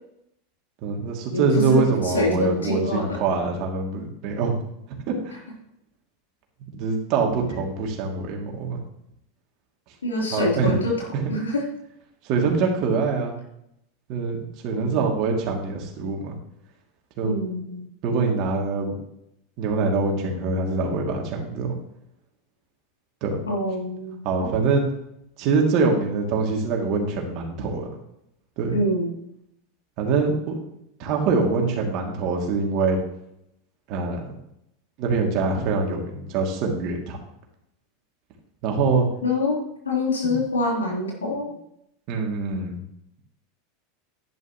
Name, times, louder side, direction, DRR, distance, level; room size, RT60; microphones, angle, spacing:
voice 1, 0.8-4.5 5.1-5.3 6.7-8.8 10.3-10.8 11.1-11.3 12.2-13.4 14.1-16.4 17.2-17.3 18.0-19.0 19.6-21.7 23.2-23.4 24.2-24.8 25.4-28.0 28.6-28.8 30.0-30.6 31.0-33.0 33.9-34.4 35.0-37.2 38.6-39.1 40.2-40.4 42.1-42.8, right 4 dB, 55° right, 1 dB, 2.7 m, -24 dB
voice 2, 1.3-3.2 10.0-10.9 11.3-11.6 14.7-15.1 17.2-17.8 23.5-24.5 28.7-29.1 39.2-39.6 39.8-41.5, left 1 dB, 90° left, -3 dB, 3.8 m, -25 dB
11.0 x 11.0 x 3.1 m, 0.79 s
hypercardioid pair, 90°, 0 cm